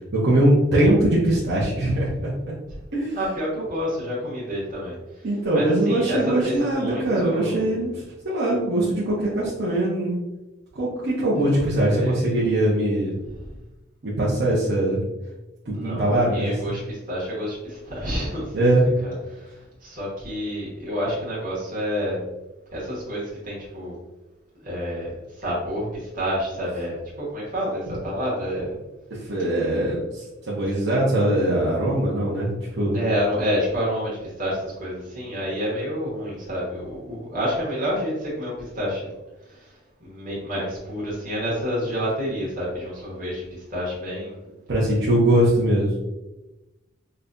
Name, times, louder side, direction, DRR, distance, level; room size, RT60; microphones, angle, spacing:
voice 1, 0.1-2.3 2.9-3.2 5.2-7.9 8.2-10.2 10.7-13.2 14.0-15.0 15.6-16.5 18.5-18.9 29.2-33.0 44.7-45.9, right 1 dB, 55° right, -7 dB, 0.8 m, -21 dB
voice 2, 3.1-5.3 5.5-7.9 11.8-12.4 13.3-13.4 15.7-18.7 19.0-22.2 22.7-24.0 24.6-28.7 29.7-29.8 30.7-30.8 32.9-39.1 39.4-44.4, equal, 40° right, -7 dB, 1.3 m, -29 dB
5.2 x 2.2 x 2.6 m, 1.0 s
head